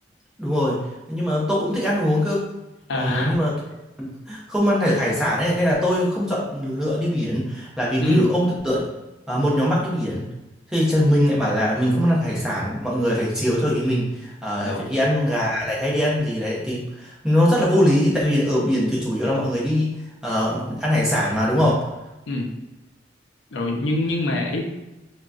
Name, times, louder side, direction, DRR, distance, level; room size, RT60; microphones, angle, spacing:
voice 1, 0.4-0.8 1.1-2.5 2.9-3.5 4.0-8.8 9.3-10.2 10.7-19.9 20.2-21.9, equal, 5° right, -6 dB, 0.6 m, -22 dB
voice 2, 2.9-3.3 8.0-8.3 14.6-14.9 22.3-22.5 23.5-24.6, left 2 dB, 90° left, 1 dB, 0.5 m, -25 dB
3.8 x 2.2 x 2.4 m, 1.0 s
head